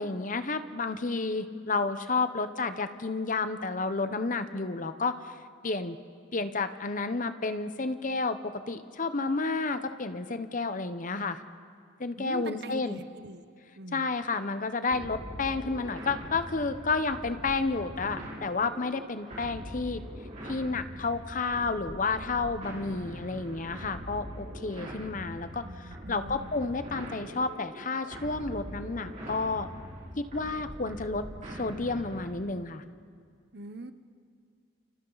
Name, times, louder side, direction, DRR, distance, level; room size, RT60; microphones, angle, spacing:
voice 1, 0.0-5.4 5.6-6.0 6.3-11.4 12.0-13.0 13.9-20.0 20.4-29.7 30.2-32.8, left 3 dB, 45° left, 10 dB, 0.9 m, -31 dB
voice 2, 12.2-13.4 13.8-14.2 25.6-26.5 33.5-33.9, right 1 dB, 60° right, 10 dB, 1.0 m, -43 dB
sound 1, 14.9-32.5, equal, 40° right, 4.8 m, -43 dB
29.5 x 28.0 x 4.1 m, 2.2 s
head